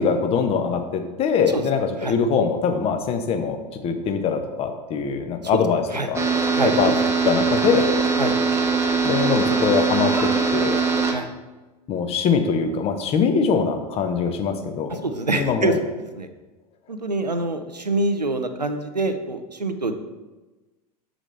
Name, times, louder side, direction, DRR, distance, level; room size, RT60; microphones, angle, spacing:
voice 1, 0.0-3.6 3.8-5.8 6.1-6.2 6.8-6.9 7.3-7.9 9.0-10.8 11.9-15.0 15.3-15.8, left 6 dB, 30° left, 6 dB, 0.7 m, -22 dB
sound 1, 6.1-11.1, right 4 dB, 15° right, 0.7 m, -21 dB
voice 2, 6.5-7.0 8.2-8.3 11.1-11.3 14.9-15.7 16.2-16.3 16.9-20.0, right 2 dB, 90° right, 8 dB, 0.5 m, -25 dB
7.1 x 5.0 x 3.3 m, 1.2 s
figure-of-eight pair, 85°, 21 cm